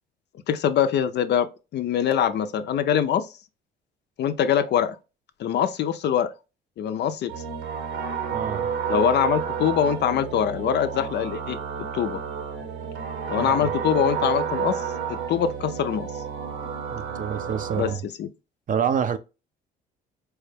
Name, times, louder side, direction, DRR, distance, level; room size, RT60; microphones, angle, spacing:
voice 1, 0.5-3.3 4.2-5.0 5.4-6.3 6.8-7.3 8.9-11.6 11.9-12.2 13.3-14.8 15.1-16.1 17.8-17.9 18.2-18.3, left 9 dB, 55° left, 0.5 m, -23 dB
sound 1, 7.3-17.9, right 7 dB, 70° right, 1.0 m, -30 dB
voice 2, 8.3-8.7 13.4-13.7 16.9-18.0 18.7-19.2, right 8 dB, 40° right, 0.5 m, -27 dB
4.6 x 2.1 x 3.3 m
supercardioid pair, 65°, 21 cm